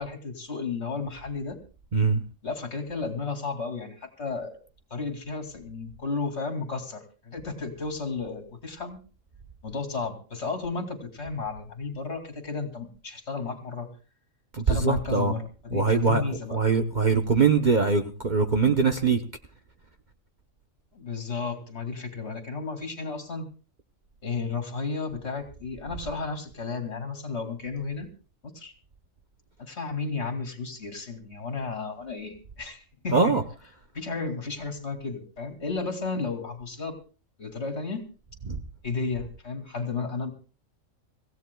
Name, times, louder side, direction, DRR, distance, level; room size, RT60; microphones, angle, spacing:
voice 1, 0.0-1.6 2.4-4.5 4.9-9.0 9.6-13.9 14.7-16.6 20.9-23.5 24.2-28.1 28.5-28.7 29.6-33.3 33.9-37.0 37.4-38.0 38.8-40.3, left 4 dB, 55° left, 5 dB, 2.7 m, -33 dB
voice 2, 1.9-2.2 14.5-15.3 15.7-16.2 16.5-19.2 33.1-33.4 38.5-38.6, right 5 dB, 40° right, 6 dB, 0.9 m, -22 dB
26.0 x 16.0 x 2.3 m, 0.35 s
omnidirectional pair, 1.3 m